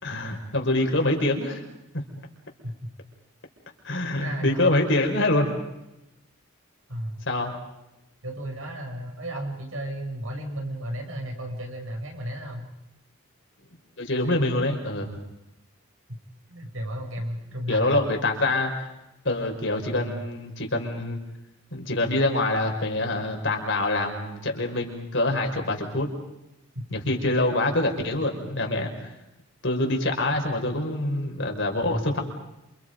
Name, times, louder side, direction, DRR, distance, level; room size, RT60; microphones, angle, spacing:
voice 1, 0.0-1.6 1.9-2.0 3.8-5.5 7.3-7.5 14.0-15.1 17.7-18.9 19.3-21.2 21.7-26.1 26.9-28.9 29.6-32.2, left 2 dB, 55° left, 2 dB, 5.2 m, -25 dB
voice 2, 4.1-4.9 6.9-7.3 8.2-12.7 16.5-18.0 19.9-20.3 26.7-26.9 31.9-32.0, equal, 70° right, 2 dB, 7.0 m, -34 dB
28.5 x 28.5 x 5.3 m, 0.91 s
head